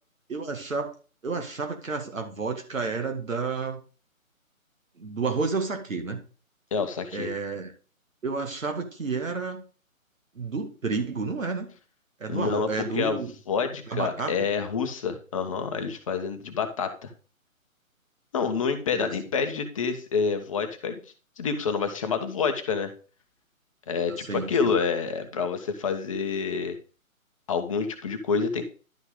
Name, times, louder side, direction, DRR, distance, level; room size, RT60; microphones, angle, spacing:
voice 1, 0.3-0.9 1.2-3.8 5.0-6.2 7.1-7.7 8.2-9.6 10.4-11.7 12.2-13.3 13.9-14.3 18.9-19.1 24.2-24.8, right 4 dB, 65° right, 4 dB, 2.3 m, -30 dB
voice 2, 6.7-7.3 12.3-17.1 18.3-21.0 21.4-22.9 23.9-26.8 27.5-28.6, left 5 dB, 25° left, 7 dB, 1.2 m, -28 dB
11.5 x 5.6 x 3.7 m, 0.36 s
figure-of-eight pair, 145°, 42 cm